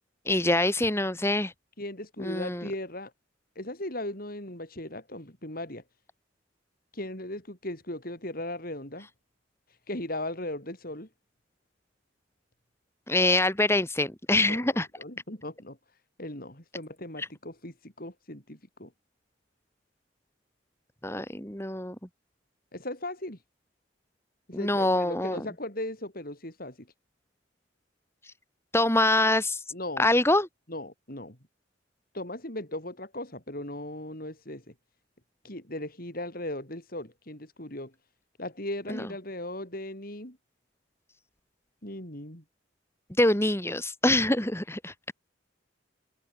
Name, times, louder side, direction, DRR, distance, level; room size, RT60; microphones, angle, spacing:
voice 1, 0.3-1.5 2.2-2.7 13.1-14.9 17.2-17.3 21.0-21.9 24.5-25.4 28.7-29.6 30.0-30.5 38.9-39.0 43.2-44.9, left 1 dB, 15° left, 4.9 m, -25 dB
voice 2, 1.8-3.1 3.6-5.8 6.9-9.1 9.9-11.1 14.5-15.8 16.2-18.9 22.7-23.4 24.5-26.9 29.7-30.1 30.7-31.4 32.1-34.7 35.4-37.9 38.4-40.4 41.8-42.4, left 1 dB, 50° left, 7.1 m, -37 dB
head